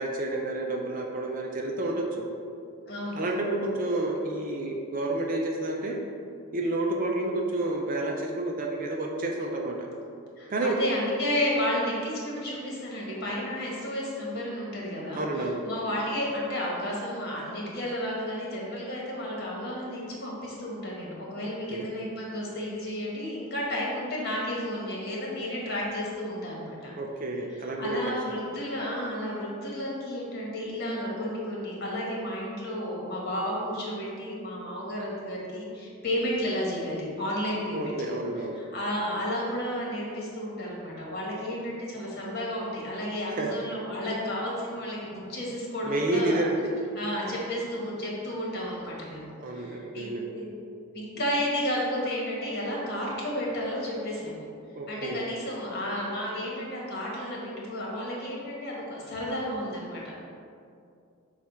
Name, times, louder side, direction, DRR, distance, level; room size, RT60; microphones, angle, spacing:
voice 1, 0.0-2.2 3.2-5.9 6.5-9.9 10.5-10.8 15.2-15.6 21.7-21.9 27.0-28.1 37.7-38.6 43.4-43.5 45.8-46.6 49.4-50.2 54.7-55.2, right 2 dB, 40° right, 0 dB, 0.5 m, -30 dB
voice 2, 2.9-3.2 10.4-26.9 27.8-38.1 38.5-46.4 46.9-50.5 50.9-54.5 54.9-60.2, equal, 50° left, -4 dB, 1.5 m, -32 dB
7.3 x 2.5 x 5.6 m, 2.4 s
head